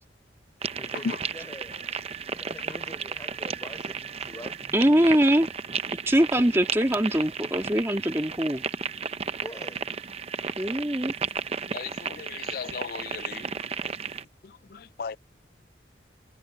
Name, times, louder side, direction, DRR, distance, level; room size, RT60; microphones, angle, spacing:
sound 1, 0.6-14.2, right 6 dB, 35° right, 0.7 m, -34 dB
voice 1, 0.7-1.7 2.3-5.1 9.4-9.9, left 1 dB, 15° left, 4.8 m, -45 dB
voice 2, 4.7-5.5 6.1-8.6 10.6-11.1, right 1 dB, 15° right, 1.9 m, -22 dB
voice 3, 11.7-13.4 14.7-15.2, left 5 dB, 55° left, 0.4 m, -35 dB
head